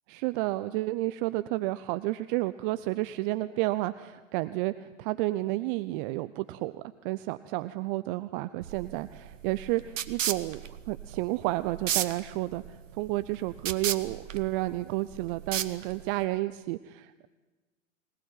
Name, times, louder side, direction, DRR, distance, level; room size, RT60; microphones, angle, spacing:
voice 1, 0.1-10.6 10.9-12.6 12.9-17.3, right 18 dB, 40° right, 14 dB, 0.8 m, -31 dB
sound 1, 8.6-16.2, right 10 dB, 70° right, 1.5 m, -35 dB
24.5 x 19.0 x 9.1 m, 1.2 s
hypercardioid pair, 105°, 39 cm